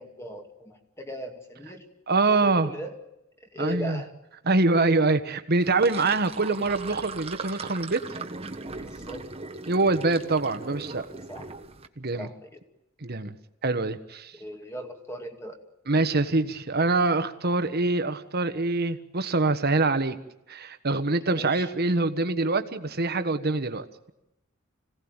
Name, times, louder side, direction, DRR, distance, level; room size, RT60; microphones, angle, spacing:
voice 1, 0.0-1.9 2.4-2.9 3.4-4.1 8.7-9.3 11.3-11.5 12.1-12.6 14.3-15.6 21.2-21.7, equal, 15° left, 4 dB, 2.4 m, -39 dB
voice 2, 2.1-2.7 3.6-4.0 4.4-8.0 9.7-11.1 12.0-12.3 13.0-13.3 13.6-14.3 15.9-20.2 20.5-24.1, right 3 dB, 50° right, 9 dB, 1.5 m, -24 dB
Sink (filling or washing), 5.6-11.9, right 3 dB, 30° right, 1.4 m, -39 dB
26.0 x 17.5 x 9.0 m, 0.89 s
head